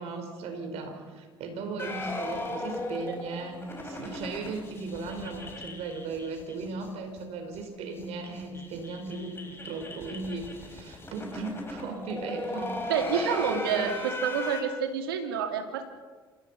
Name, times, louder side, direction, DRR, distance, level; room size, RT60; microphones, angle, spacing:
voice 1, 0.0-12.8 13.1-13.9, right 3 dB, 65° right, 4 dB, 5.2 m, -37 dB
sound 1, 1.8-6.9 7.2-7.3 7.5-7.6 7.9-14.6, left 2 dB, 20° left, 6.3 m, -37 dB
voice 2, 12.9-15.9, right 7 dB, 85° right, 6 dB, 2.5 m, -29 dB
27.5 x 16.5 x 5.8 m, 1.4 s
hypercardioid pair, 65°, 12 cm